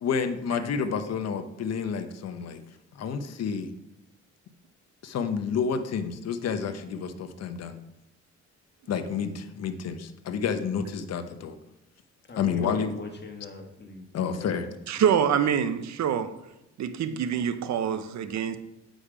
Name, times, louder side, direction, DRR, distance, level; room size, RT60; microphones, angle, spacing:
voice 1, 0.0-2.6 2.9-3.7 5.0-7.8 8.9-11.6 12.4-12.9 14.1-14.7, left 6 dB, 55° left, 8 dB, 0.9 m, -29 dB
voice 2, 12.3-14.8, left 4 dB, 35° left, 3 dB, 1.7 m, -41 dB
voice 3, 14.9-16.3 16.8-18.6, right 8 dB, 65° right, 11 dB, 0.9 m, -25 dB
8.5 x 5.1 x 5.1 m, 0.89 s
cardioid pair, 90°, 30 cm